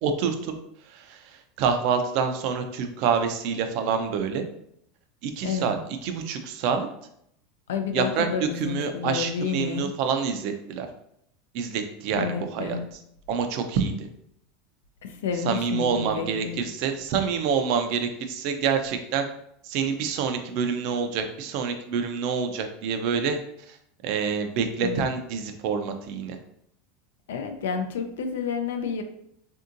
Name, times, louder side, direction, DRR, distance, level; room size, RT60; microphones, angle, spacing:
voice 1, 0.0-0.5 0.9-4.4 5.2-5.8 6.0-6.9 7.9-10.9 11.5-12.8 13.3-14.1 15.4-19.3 19.6-23.4 23.7-23.8 24.0-26.4, right 6 dB, 60° right, 7 dB, 0.4 m, -27 dB
voice 2, 5.4-5.7 7.7-9.9 12.1-12.9 15.0-16.6 24.8-25.1 27.3-29.0, left 6 dB, 90° left, 6 dB, 0.4 m, -30 dB
3.5 x 2.7 x 2.5 m, 0.73 s
supercardioid pair, 125°, 0 cm